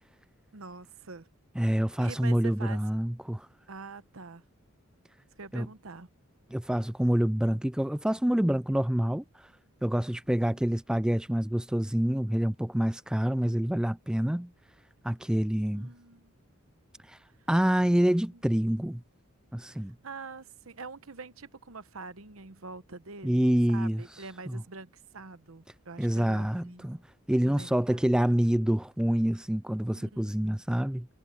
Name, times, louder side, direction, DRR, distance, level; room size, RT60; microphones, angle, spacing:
voice 1, 0.5-1.3 1.8-2.8 3.7-4.4 5.4-6.1 15.7-16.3 17.4-17.5 18.3-18.5 19.7-27.0 27.4-28.1 29.9-30.5, right 4 dB, 75° right, 1.0 m, -45 dB
voice 2, 1.6-3.5 5.5-5.7 6.5-9.2 9.8-14.5 15.0-15.9 17.1-17.2 17.5-19.0 19.5-19.9 23.2-24.0 24.5-24.6 26.0-27.0 27.3-31.1, equal, 5° right, 0.3 m, -27 dB
head